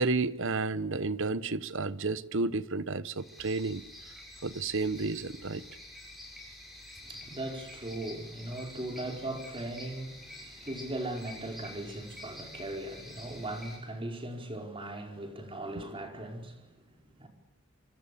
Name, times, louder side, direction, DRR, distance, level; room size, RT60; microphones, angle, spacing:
voice 1, 0.0-3.8 4.4-5.6, right 3 dB, 60° right, 1.1 m, -31 dB
sound 1, 3.2-13.8, left 1 dB, ahead, 7.4 m, -48 dB
voice 2, 7.0-17.3, right 1 dB, 25° right, 4.8 m, -39 dB
26.5 x 25.0 x 8.5 m
head